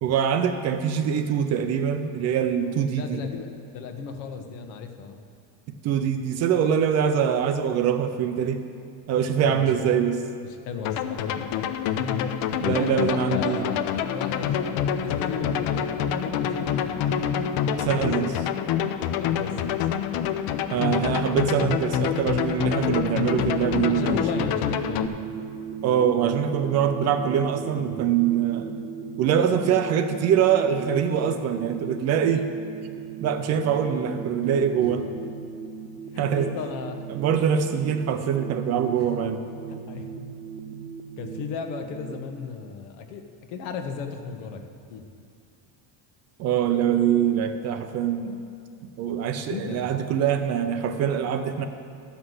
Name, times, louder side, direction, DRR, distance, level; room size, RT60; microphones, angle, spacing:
voice 1, 0.0-3.2 5.8-8.6 9.1-10.2 12.6-13.7 17.9-18.3 20.7-24.5 25.8-28.7 29.2-32.5 33.2-35.1 36.2-36.5 37.1-39.4 46.4-48.4 49.0-51.7, right 8 dB, 35° right, 8 dB, 0.4 m, -24 dB
voice 2, 2.9-5.2 9.4-9.9 10.4-12.3 12.6-17.2 17.7-18.1 19.2-19.9 23.9-25.2 34.8-34.9 36.1-37.1 39.0-39.1 39.7-40.1 41.2-45.1 49.5-50.0, left 5 dB, 90° left, 5 dB, 1.3 m, -35 dB
sound 1, 10.8-25.1, left 9 dB, 50° left, 0.5 m, -26 dB
sound 2, 23.2-42.2, right 7 dB, 75° right, 1.0 m, -38 dB
12.5 x 5.8 x 8.0 m, 2.5 s
cardioid pair, 170°, 48 cm